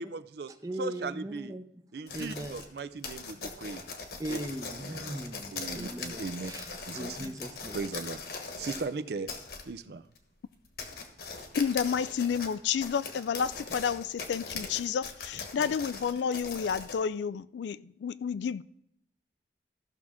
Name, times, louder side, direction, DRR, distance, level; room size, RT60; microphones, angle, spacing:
voice 1, 0.0-0.5 0.8-1.5 1.9-3.8 4.3-4.4 4.8-5.2 5.5-6.5 6.9-7.4 7.7-9.3 9.7-10.1 15.3-15.7, right 3 dB, 65° right, 0.5 m, -38 dB
voice 2, 0.6-1.6 2.1-2.5 4.2-7.8, right 1 dB, 20° right, 0.7 m, -39 dB
sound 1, 2.1-8.9 9.3-9.7 10.2-10.3 10.7-17.0, left 4 dB, 60° left, 1.2 m, -40 dB
voice 3, 11.6-18.6, left 7 dB, 80° left, 0.3 m, -30 dB
15.0 x 6.2 x 3.6 m
head